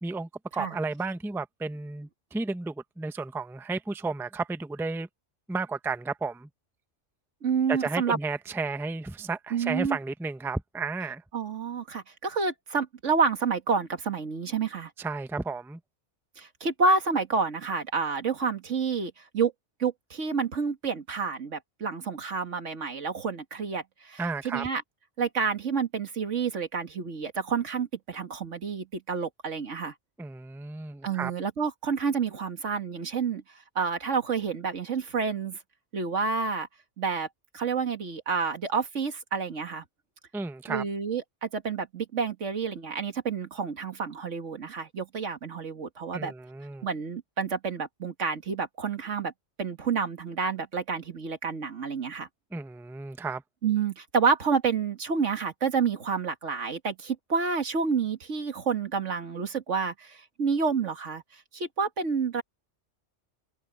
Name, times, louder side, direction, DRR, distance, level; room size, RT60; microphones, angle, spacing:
voice 1, 0.0-5.1 5.5-6.5 7.7-11.2 15.0-15.8 24.2-24.7 30.2-31.3 40.3-40.8 46.1-46.9 52.5-53.4, right 3 dB, 5° right, 0.5 m, -33 dB
voice 2, 7.4-8.2 9.5-10.0 11.3-14.9 16.4-19.5 19.8-24.8 25.2-29.9 31.0-33.4 33.8-35.6 35.9-36.7 37.0-37.3 37.5-39.8 40.7-46.3 46.8-49.3 49.6-52.3 53.6-61.2 61.5-62.4, right 5 dB, 90° right, 2.1 m, -29 dB
omnidirectional pair, 1.2 m